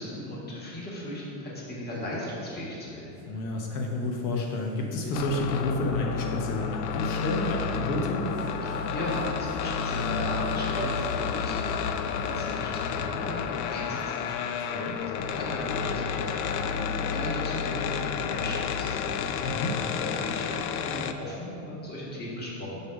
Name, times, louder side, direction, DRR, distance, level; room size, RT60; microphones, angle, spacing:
voice 1, 0.0-3.1 8.6-19.6 20.0-22.8, left 1 dB, 20° left, -5 dB, 1.4 m, -37 dB
sound 1, 3.2-3.3 3.7-4.7 5.3-5.4 6.5-7.6 8.2-13.1, equal, 40° left, 1.3 m, -42 dB
voice 2, 3.3-8.2 14.6-15.0 19.4-19.7, left 2 dB, 80° left, 0 dB, 1.1 m, -30 dB
sound 2, 5.1-21.1, left 7 dB, 65° left, 0.5 m, -31 dB
5.2 x 4.4 x 5.0 m, 2.8 s
supercardioid pair, 135°, 50 cm